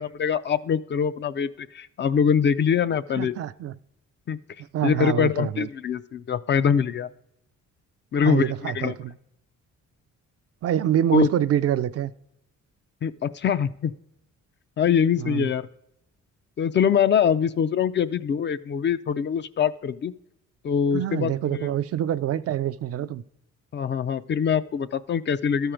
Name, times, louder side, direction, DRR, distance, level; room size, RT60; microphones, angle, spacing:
voice 1, 0.0-3.3 4.3-4.4 4.8-7.1 8.1-8.9 11.1-11.3 13.0-13.9 14.8-15.7 16.6-20.1 20.6-21.7 23.7-25.7, left 7 dB, 40° left, 0.4 m, -23 dB
voice 2, 3.2-3.7 4.7-5.7 8.2-9.1 10.6-12.1 15.2-15.5 20.9-23.2, right 11 dB, 55° right, 0.4 m, -26 dB
12.5 x 4.5 x 5.0 m
cardioid pair, 90°, 30 cm